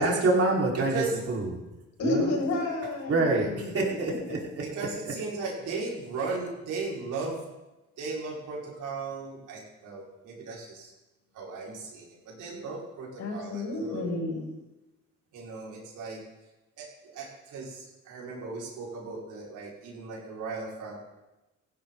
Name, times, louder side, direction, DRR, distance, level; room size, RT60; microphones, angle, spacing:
voice 1, 0.0-1.5 2.0-2.3 3.1-4.4, right 2 dB, 50° right, -3 dB, 4.9 m, -26 dB
voice 2, 0.8-1.2 4.6-7.4 8.0-10.9 11.3-14.1 15.3-16.2 16.8-21.0, right 4 dB, 85° right, -3 dB, 5.6 m, -36 dB
voice 3, 2.0-3.7 13.2-14.5, left 2 dB, 70° left, -1 dB, 6.7 m, -30 dB
18.0 x 16.0 x 4.1 m, 1.0 s
cardioid pair, 90°, 30 cm